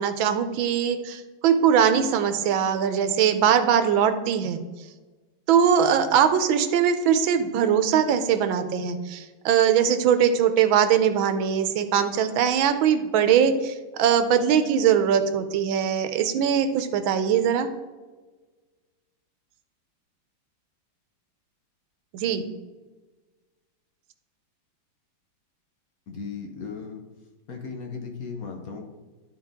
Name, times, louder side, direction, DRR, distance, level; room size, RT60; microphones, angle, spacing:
voice 1, 0.0-4.6 5.5-17.7 22.1-22.5, right 8 dB, 85° right, 10 dB, 1.5 m, -21 dB
voice 2, 26.1-27.0 27.5-28.8, left 5 dB, 55° left, 2 dB, 1.3 m, -36 dB
12.5 x 4.4 x 3.6 m, 1.3 s
omnidirectional pair, 2.1 m